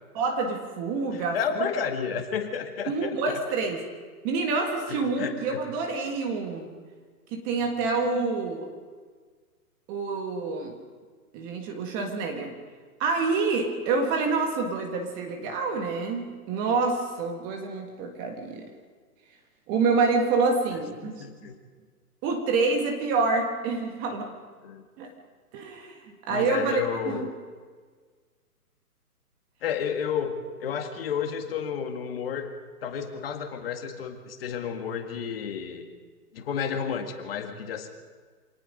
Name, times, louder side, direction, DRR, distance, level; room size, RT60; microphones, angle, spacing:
voice 1, 0.1-1.7 2.9-3.8 4.2-6.7 7.3-8.7 9.9-10.8 11.3-12.6 13.0-18.7 19.7-21.2 22.2-24.3 25.0-25.1 25.5-27.3, right 4 dB, 20° right, 3 dB, 1.6 m, -27 dB
voice 2, 1.1-3.1 4.9-5.6 21.0-21.6 24.6-24.9 26.3-27.3 29.6-32.5 32.8-35.9 36.3-37.9, left 7 dB, 40° left, 5 dB, 2.0 m, -31 dB
26.0 x 18.5 x 5.3 m, 1.6 s
hypercardioid pair, 150°, 46 cm